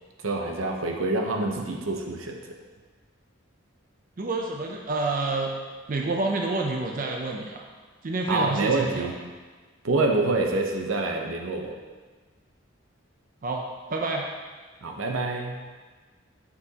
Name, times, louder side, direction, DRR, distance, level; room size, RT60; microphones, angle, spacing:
voice 1, 0.2-2.3 8.3-9.2 9.8-11.8 14.8-15.6, right 2 dB, 85° right, 2 dB, 0.8 m, -26 dB
voice 2, 4.2-5.5 5.9-7.6 8.0-9.1 13.4-13.6 13.9-14.3, right 3 dB, 45° right, 1 dB, 0.5 m, -28 dB
6.9 x 6.7 x 2.9 m, 1.4 s
head